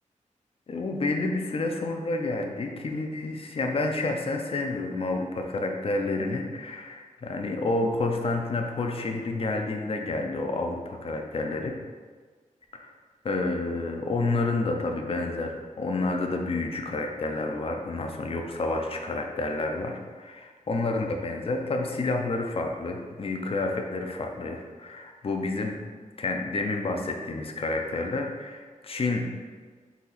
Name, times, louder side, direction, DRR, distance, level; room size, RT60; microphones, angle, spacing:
voice 1, 0.7-11.8 12.8-12.9 13.2-25.8 26.2-29.3, left 2 dB, 45° left, 3 dB, 0.5 m, -29 dB
4.1 x 2.8 x 4.0 m, 1.5 s
wide cardioid pair, 145°, 14 cm